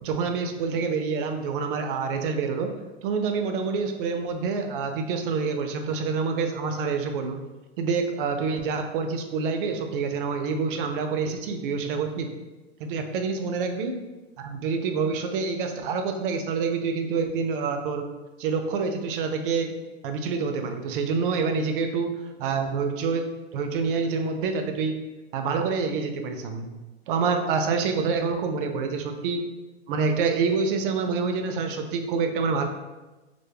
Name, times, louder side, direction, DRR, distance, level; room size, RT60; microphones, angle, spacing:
voice 1, 0.0-2.7 3.0-7.4 7.8-12.3 12.8-14.0 14.4-18.1 18.4-19.7 20.0-22.1 22.4-23.2 23.5-24.9 25.3-26.7 27.1-29.4 29.9-32.6, right 5 dB, 55° right, 5 dB, 0.4 m, -27 dB
2.1 x 2.0 x 3.2 m, 1.1 s
hypercardioid pair, 115°, 32 cm